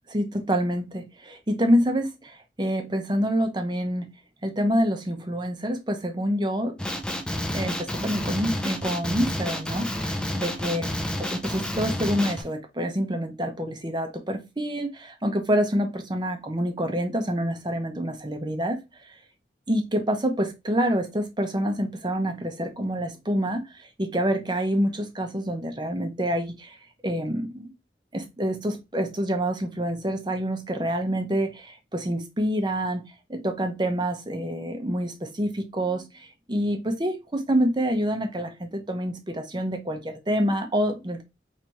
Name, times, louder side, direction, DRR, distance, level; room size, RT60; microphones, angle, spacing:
voice 1, 0.1-4.1 4.4-6.8 7.5-10.9 11.2-18.8 19.7-26.8 27.0-27.7 28.1-33.0 33.3-41.2, equal, 25° right, 0.8 m, -27 dB
Male speech man speaking, 6.8-12.4, left 1 dB, 5° left, 0.5 m, -30 dB
4.6 x 3.3 x 2.9 m
head